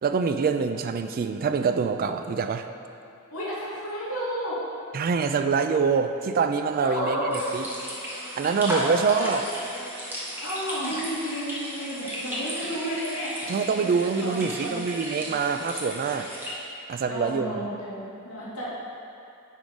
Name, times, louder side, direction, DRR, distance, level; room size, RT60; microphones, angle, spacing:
voice 1, 0.0-2.7 4.9-7.6 8.3-9.4 13.5-16.3 16.9-17.6, right 5 dB, 40° right, 8 dB, 0.3 m, -25 dB
voice 2, 3.3-4.6 6.8-7.6 8.7-8.9 9.2-9.3 10.4-13.9 14.2-14.8 17.0-18.7, equal, 75° left, -8 dB, 1.6 m, -32 dB
sound 1, 7.3-16.5, equal, 10° right, 1.2 m, -35 dB
9.0 x 3.7 x 4.8 m, 2.6 s
head